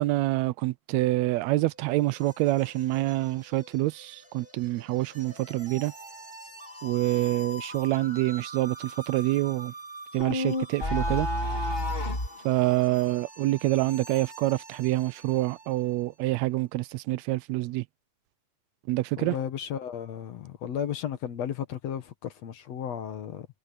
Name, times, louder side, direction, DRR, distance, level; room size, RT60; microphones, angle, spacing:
voice 1, 0.0-5.9 6.8-9.7 10.1-11.3 12.4-17.8 18.9-19.4, right 18 dB, 80° right, 1.6 m, -26 dB
sound 1, 1.3-15.9, right 1 dB, 15° right, 5.0 m, -45 dB
sound 2, 10.2-12.3, left 1 dB, 15° left, 4.2 m, -28 dB
voice 2, 19.2-23.5, left 9 dB, 65° left, 2.4 m, -34 dB
omnidirectional pair, 3.4 m